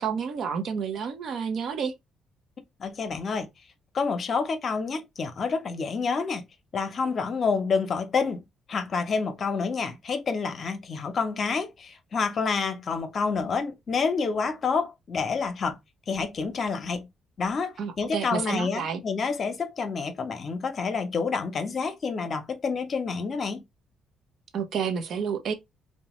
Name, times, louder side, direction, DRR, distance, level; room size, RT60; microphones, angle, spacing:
voice 1, 0.0-1.9 17.8-19.0 24.5-25.5, right 6 dB, 65° right, 0.6 m, -30 dB
voice 2, 2.8-3.5 3.9-6.4 6.7-8.4 8.7-15.8 16.1-17.1 17.4-23.6, left 5 dB, 50° left, 0.7 m, -28 dB
2.8 x 2.1 x 3.0 m
cardioid pair, 90°, 0 cm